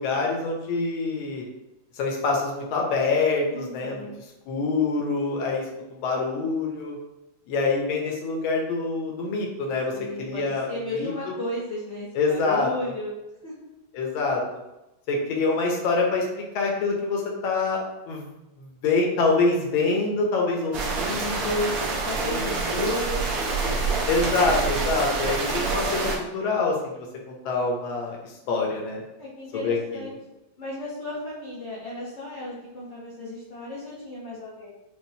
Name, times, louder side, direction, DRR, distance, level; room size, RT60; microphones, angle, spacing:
voice 1, 0.0-1.4 1.9-4.1 4.5-5.6 5.9-7.0 7.5-9.9 10.2-10.7 10.9-11.1 12.1-12.7 13.9-14.6 15.1-17.8 18.1-18.3 18.6-21.7 22.2-22.8 24.1-29.0 29.6-30.0, left 3 dB, 80° left, 0 dB, 1.6 m, -25 dB
voice 2, 3.5-4.2 9.9-13.2 13.4-13.7 21.8-23.9 29.2-30.2 30.6-34.7, left 2 dB, 50° left, -7 dB, 0.9 m, -34 dB
sound 1, 20.7-26.2, right 4 dB, 65° right, 0.9 m, -27 dB
5.3 x 2.4 x 2.7 m, 0.95 s
omnidirectional pair, 2.2 m